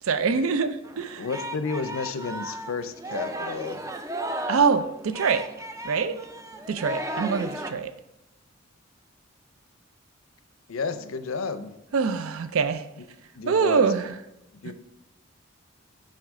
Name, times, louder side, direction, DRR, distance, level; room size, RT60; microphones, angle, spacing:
voice 1, 0.0-1.3 4.5-5.4 5.8-6.2 6.7-7.9 11.9-12.9 13.5-14.2 14.6-14.7, right 5 dB, 85° right, 12 dB, 0.4 m, -24 dB
Singing, 0.8-7.7, right 1 dB, 15° right, 0.3 m, -35 dB
voice 2, 1.2-3.8 10.7-11.7 13.3-13.8 14.5-14.7, left 4 dB, 80° left, 10 dB, 0.5 m, -31 dB
6.3 x 5.7 x 3.6 m, 0.89 s
head